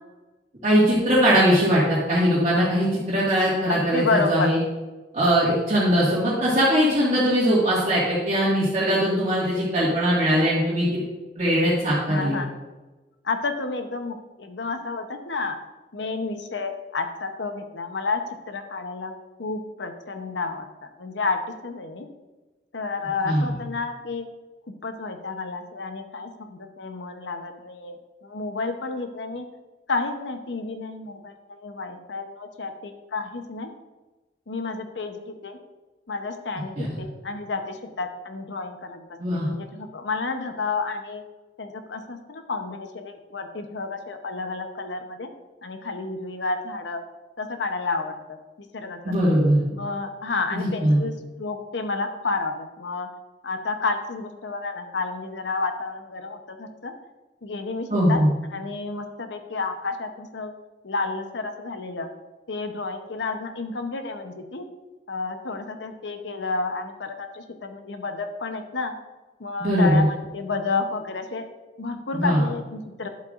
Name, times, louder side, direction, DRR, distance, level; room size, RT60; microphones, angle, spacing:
voice 1, 0.6-4.6 5.1-11.0 11.4-12.4 23.2-23.5 36.8-36.9 39.2-39.5 49.0-49.6 50.5-51.0 57.9-58.3 69.6-70.1 72.1-72.4, equal, 40° right, -9 dB, 1.9 m, -20 dB
voice 2, 3.7-4.5 12.1-12.5 13.2-15.6 15.9-18.2 18.5-19.1 19.4-20.7 21.0-22.1 22.7-24.3 24.8-28.0 28.2-29.5 29.9-33.7 34.5-35.6 36.1-41.2 41.6-45.3 45.6-47.0 47.4-48.4 48.7-49.1 49.7-51.1 51.4-53.1 53.4-56.9 57.4-58.2 58.5-60.5 60.8-62.1 62.5-64.6 65.1-68.9 69.4-71.4 71.8-73.1, left 3 dB, 85° left, 6 dB, 0.9 m, -30 dB
10.5 x 7.8 x 2.5 m, 1.2 s
head